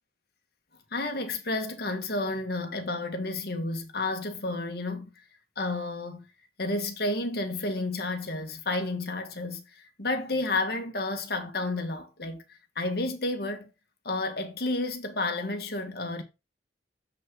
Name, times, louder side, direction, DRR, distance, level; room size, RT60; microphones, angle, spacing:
voice 1, 0.9-5.1 5.6-6.3 6.6-12.4 12.8-13.7 14.1-16.2, left 2 dB, 60° left, 1.7 m, -31 dB
7.5 x 6.1 x 3.8 m
head